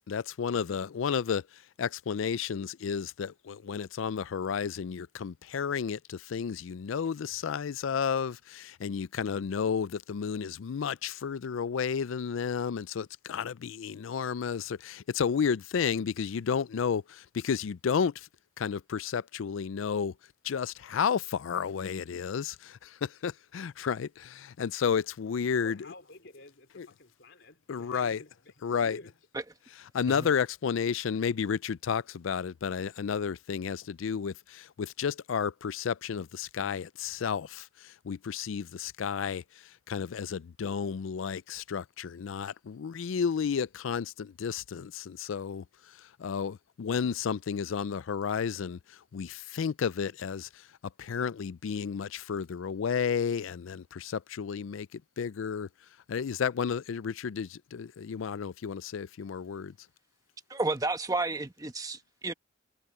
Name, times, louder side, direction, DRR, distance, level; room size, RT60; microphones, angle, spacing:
voice 1, 0.1-1.4 1.8-18.3 18.6-20.1 20.4-25.8 26.8-26.9 27.7-28.2 28.6-29.0 29.9-39.4 39.9-45.6 46.2-48.8 49.1-50.5 51.0-55.7 56.1-59.7, left 6 dB, 75° left, 0.4 m, -32 dB
voice 2, 25.6-29.2, left 2 dB, 60° left, 3.6 m, -51 dB
voice 3, 60.5-62.3, right 2 dB, 20° right, 1.2 m, -31 dB
head